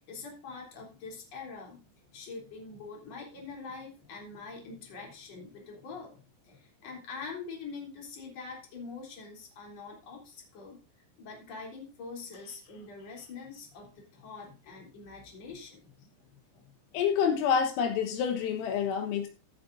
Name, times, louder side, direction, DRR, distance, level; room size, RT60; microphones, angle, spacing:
voice 1, 0.0-1.9 2.1-10.8 11.2-17.0, left 4 dB, 35° left, -1 dB, 3.9 m, -44 dB
voice 2, 16.9-19.3, left 7 dB, 80° left, 4 dB, 3.9 m, -27 dB
15.5 x 9.5 x 2.7 m, 0.33 s
omnidirectional pair, 6.0 m